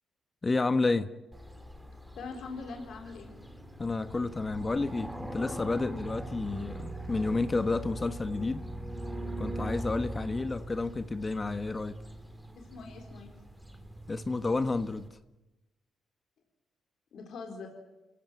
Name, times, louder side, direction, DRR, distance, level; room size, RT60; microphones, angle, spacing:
voice 1, 0.4-1.1 3.8-8.6 9.4-11.9 14.1-15.1, left 3 dB, 25° left, 10 dB, 1.2 m, -30 dB
sound 1, 1.3-15.1, right 1 dB, 5° right, 3.7 m, -41 dB
voice 2, 2.2-3.3 12.6-13.3 17.1-17.7, left 4 dB, 65° left, 3 dB, 4.4 m, -42 dB
27.0 x 17.0 x 9.4 m, 1.0 s
cardioid pair, 85°, 0 cm